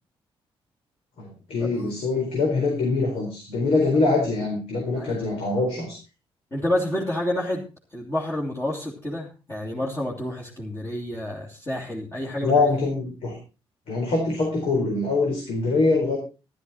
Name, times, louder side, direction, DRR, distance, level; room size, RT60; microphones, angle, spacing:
voice 1, 1.2-6.0 12.4-13.4 13.9-16.2, left 3 dB, 80° left, 1 dB, 4.3 m, -23 dB
voice 2, 4.9-5.3 6.5-7.6 7.9-12.5, left 1 dB, 25° left, -5 dB, 2.9 m, -29 dB
13.0 x 12.5 x 4.2 m, 0.32 s
wide cardioid pair, 155°, 10 cm